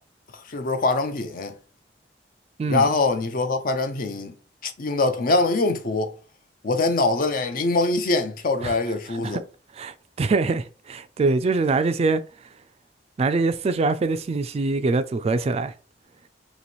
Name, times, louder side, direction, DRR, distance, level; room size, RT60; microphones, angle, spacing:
voice 1, 0.5-1.5 2.6-4.3 4.6-6.1 6.6-9.4, left 3 dB, 50° left, 0.6 m, -23 dB
voice 2, 9.1-9.4 9.7-12.2 13.2-15.7, right 3 dB, 35° right, 0.3 m, -24 dB
3.0 x 3.0 x 4.2 m
head